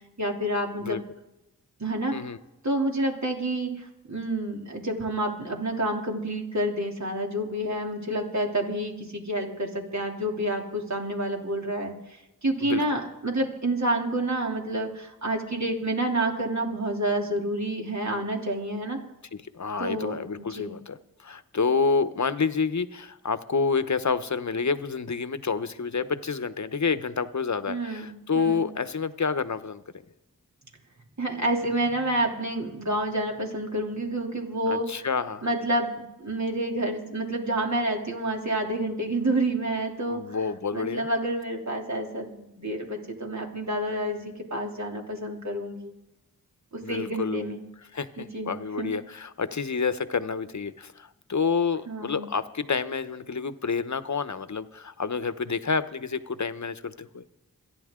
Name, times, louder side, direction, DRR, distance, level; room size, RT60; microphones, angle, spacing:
voice 1, 0.2-1.0 1.8-2.2 2.6-11.9 12.4-19.0 19.8-20.2 20.5-20.7 27.7-28.7 31.2-34.9 35.4-40.4 40.7-45.9 46.7-47.6 48.2-48.9 51.9-52.3, right 1 dB, 50° right, 1 dB, 3.1 m, -29 dB
voice 2, 19.5-29.8 34.7-35.5 40.1-41.1 46.8-47.5 47.8-57.2, left 5 dB, 50° left, 13 dB, 1.0 m, -29 dB
27.5 x 10.5 x 3.8 m, 0.92 s
cardioid pair, 45°, 36 cm